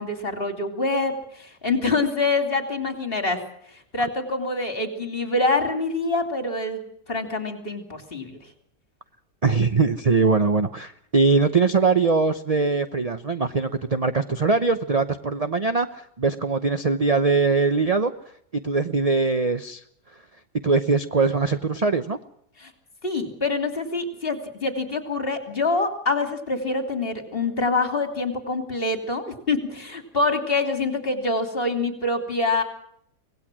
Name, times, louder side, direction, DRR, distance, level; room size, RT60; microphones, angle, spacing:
voice 1, 0.0-3.4 3.7-8.4 22.6-22.7 23.0-32.6, left 3 dB, 30° left, 6 dB, 3.2 m, -25 dB
voice 2, 9.4-18.1 18.5-19.8 20.6-22.2, right 4 dB, 35° right, 10 dB, 0.6 m, -21 dB
25.0 x 19.0 x 6.2 m, 0.69 s
omnidirectional pair, 1.8 m